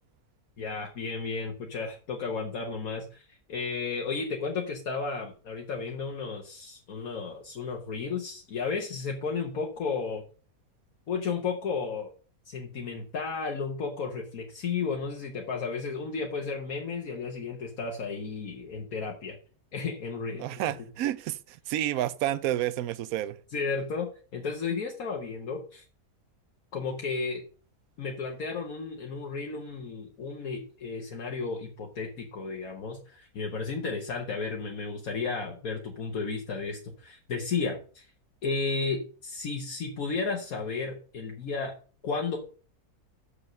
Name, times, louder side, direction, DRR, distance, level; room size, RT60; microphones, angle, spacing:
voice 1, 0.6-10.2 11.1-12.1 12.4-19.4 19.7-20.7 23.5-25.8 26.7-27.4 28.0-38.1 38.4-41.7 42.0-42.4, left 4 dB, 70° left, 1.6 m, -33 dB
voice 2, 20.4-23.4, right 13 dB, 75° right, 1.0 m, -30 dB
7.0 x 4.9 x 6.5 m
omnidirectional pair, 1.6 m